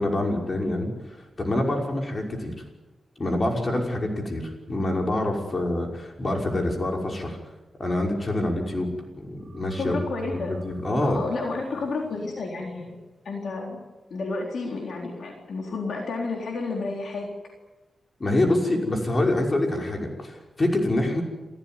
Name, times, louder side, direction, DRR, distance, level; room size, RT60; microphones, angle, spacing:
voice 1, 0.0-2.5 3.2-7.4 7.8-8.9 9.2-10.0 10.5-11.2 18.2-21.2, left 1 dB, 35° left, 2 dB, 5.7 m, -26 dB
sound 1, 9.4-12.2, equal, 55° right, 3.0 m, -42 dB
voice 2, 9.8-10.6 11.0-13.0 13.2-13.8 14.1-17.3, left 3 dB, 75° left, 0 dB, 3.9 m, -31 dB
28.0 x 14.5 x 9.5 m, 1.1 s
cardioid pair, 85°, 0 cm